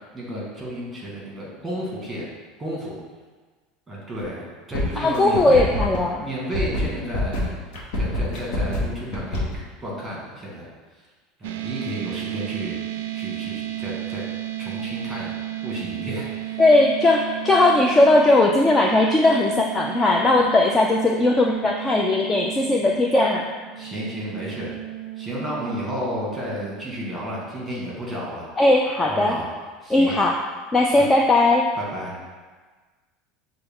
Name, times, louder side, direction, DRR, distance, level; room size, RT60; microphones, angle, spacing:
voice 1, 0.1-2.3 2.6-3.0 3.9-5.6 6.2-7.5 7.9-9.4 9.8-10.7 11.4-14.2 14.6-15.3 15.6-16.6 23.7-24.8 25.2-28.5 29.0-29.5 29.8-30.1 31.8-32.2, equal, 10° right, -5 dB, 1.5 m, -32 dB
sound 1, 4.2-4.4 4.7-9.5, left 1 dB, 65° left, 0.9 m, -25 dB
voice 2, 5.0-6.2 16.6-23.5 28.6-29.4 29.9-30.4 30.7-31.7, left 2 dB, 15° left, 0 dB, 0.3 m, -18 dB
sound 2, 11.4-27.0, right 14 dB, 90° right, 0.3 m, -33 dB
6.7 x 2.3 x 3.5 m, 1.4 s
supercardioid pair, 145°, 0 cm